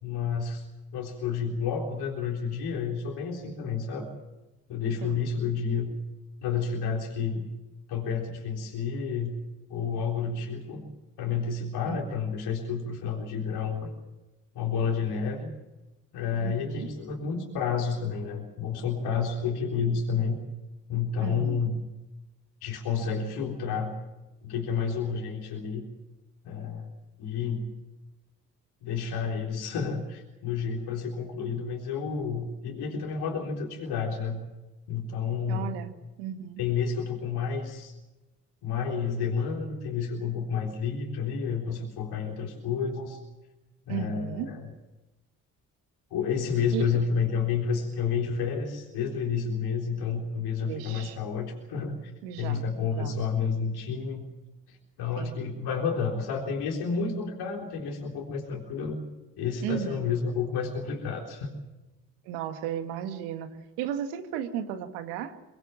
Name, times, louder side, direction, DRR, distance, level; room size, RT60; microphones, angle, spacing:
voice 1, 0.0-0.6 0.9-4.1 4.7-5.9 6.4-7.5 7.9-9.4 9.7-10.8 11.2-13.9 14.6-15.5 16.1-20.4 20.9-21.8 22.6-23.9 24.4-25.8 26.4-26.9 27.2-27.7 28.8-34.4 34.9-35.7 36.6-37.9 38.6-43.2 43.9-44.6 46.1-52.1 52.4-54.2 54.7-59.0 59.4-61.5, left 6 dB, 70° left, -1 dB, 3.9 m, -30 dB
voice 2, 16.4-16.9 21.2-21.7 35.5-35.9 36.2-36.6 43.9-44.5 46.7-47.0 50.6-51.2 52.2-53.2 55.2-55.4 59.6-60.1 62.3-65.3, right 9 dB, 85° right, 8 dB, 1.9 m, -35 dB
24.0 x 19.5 x 7.3 m, 1.0 s
hypercardioid pair, 50°, 39 cm